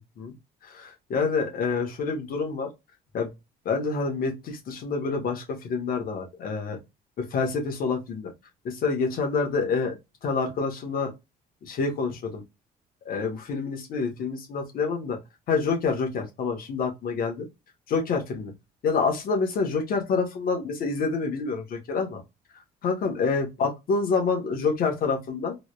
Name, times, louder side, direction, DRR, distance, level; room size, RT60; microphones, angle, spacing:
voice 1, 0.7-2.7 3.1-3.3 3.6-6.8 7.2-8.3 8.6-10.0 10.2-11.1 11.6-12.4 13.0-15.2 15.5-17.5 17.9-18.5 18.8-22.2 22.8-25.6, left 4 dB, 60° left, 1.6 m, -27 dB
3.9 x 3.2 x 2.5 m
cardioid pair, 110°, 17 cm